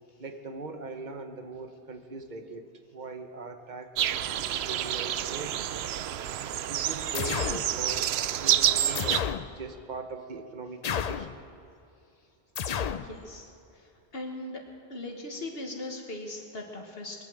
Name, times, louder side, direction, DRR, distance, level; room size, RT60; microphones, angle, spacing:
voice 1, 0.2-2.7 2.9-5.8 6.7-11.4, right 3 dB, 50° right, 7 dB, 1.2 m, -41 dB
sound 1, 4.0-9.2, right 11 dB, 85° right, 0.8 m, -28 dB
sound 2, 7.1-7.7 9.0-9.5 10.8-11.3 12.6-13.1, left 7 dB, 50° left, 0.5 m, -31 dB
voice 2, 12.9-14.6 14.9-17.2, left 2 dB, 70° left, 2 dB, 1.7 m, -39 dB
21.0 x 8.9 x 7.7 m, 2.5 s
omnidirectional pair, 1.0 m